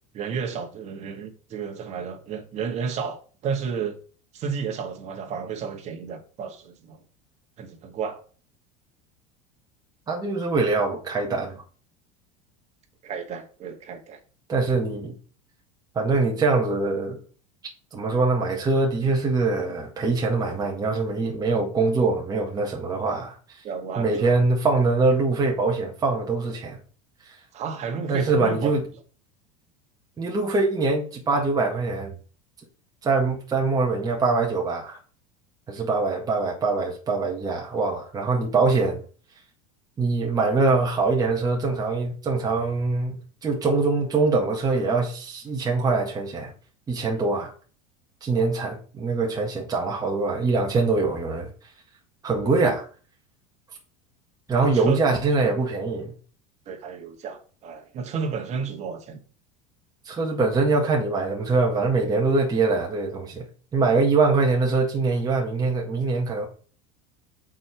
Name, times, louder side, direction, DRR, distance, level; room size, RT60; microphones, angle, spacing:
voice 1, 0.1-4.0 4.3-7.0 7.6-8.2 13.0-14.2 23.6-24.4 27.5-28.7 48.3-48.4 54.6-55.0 55.4-55.5 56.7-59.2, right 6 dB, 40° right, 1.9 m, -32 dB
voice 2, 10.1-11.6 14.5-15.2 16.0-17.2 17.9-23.4 24.0-26.8 27.2-27.4 28.1-28.8 30.2-32.1 33.0-35.0 35.7-39.0 40.0-46.5 46.9-47.5 48.2-51.5 52.2-52.9 54.5-56.1 60.1-66.5, right 3 dB, 20° right, 1.8 m, -23 dB
6.1 x 4.7 x 5.8 m
supercardioid pair, 120°, 17 cm